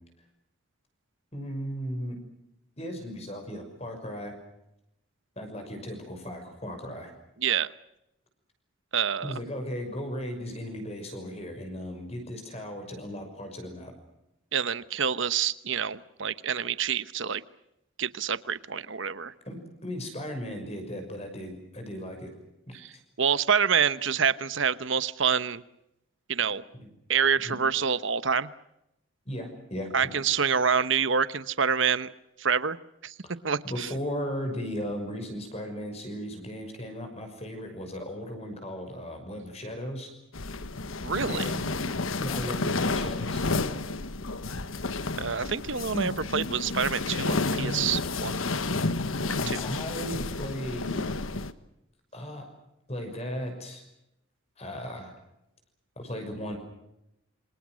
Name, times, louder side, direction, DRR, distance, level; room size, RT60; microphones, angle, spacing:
voice 1, 1.3-2.2 2.8-4.3 5.4-7.1 9.2-14.0 19.4-22.3 22.7-23.0 26.7-26.9 27.4-27.6 29.3-30.2 33.2-33.3 33.6-40.1 41.3-41.8 42.2-43.4 49.6-51.1 52.1-52.5 52.9-53.8 54.6-55.1 56.0-56.6, equal, 30° left, 5 dB, 6.2 m, -36 dB
voice 2, 8.9-9.4 14.5-17.4 18.0-19.3 22.7-22.9 23.2-25.6 26.3-26.6 27.1-28.5 29.9-32.1 32.4-32.8 33.0-33.1 33.4-33.9 41.0-41.5 45.2-48.3 49.2-49.6, right 7 dB, 65° right, 15 dB, 1.0 m, -27 dB
sound 1, 40.3-51.5, left 3 dB, 80° left, 1.3 m, -30 dB
28.0 x 26.0 x 6.3 m, 0.85 s
head